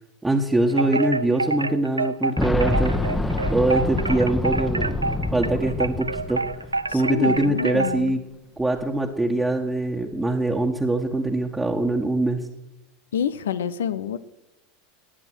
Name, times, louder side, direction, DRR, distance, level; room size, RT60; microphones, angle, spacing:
voice 1, 0.2-2.9 3.5-5.0 5.3-6.4 6.9-8.2 8.6-12.5, right 2 dB, 10° right, 0 dB, 1.6 m, -23 dB
Wind chime, 0.7-8.1, right 3 dB, 85° right, 0.4 m, -27 dB
Boom, 2.4-7.1 7.4-7.5 8.6-8.7, left 2 dB, 10° left, 1.2 m, -26 dB
voice 2, 6.9-8.1 13.1-14.2, left 9 dB, 70° left, 14 dB, 0.7 m, -27 dB
18.5 x 9.8 x 6.2 m, 0.95 s
figure-of-eight pair, 80°, 0 cm